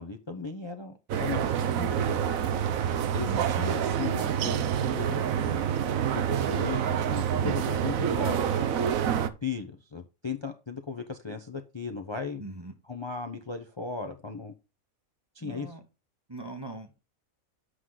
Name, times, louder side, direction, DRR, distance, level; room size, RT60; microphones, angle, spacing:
voice 1, 0.0-2.3 3.1-8.5 9.4-12.4 12.9-14.5 15.3-15.7, left 5 dB, 30° left, 6 dB, 0.6 m, -37 dB
sound 1, 1.1-9.3, right 8 dB, 75° right, 1.1 m, -27 dB
voice 2, 12.4-12.7 15.4-15.8 16.3-17.0, right 2 dB, 20° right, 5 dB, 0.8 m, -40 dB
8.0 x 6.3 x 3.9 m, 0.29 s
omnidirectional pair, 1.4 m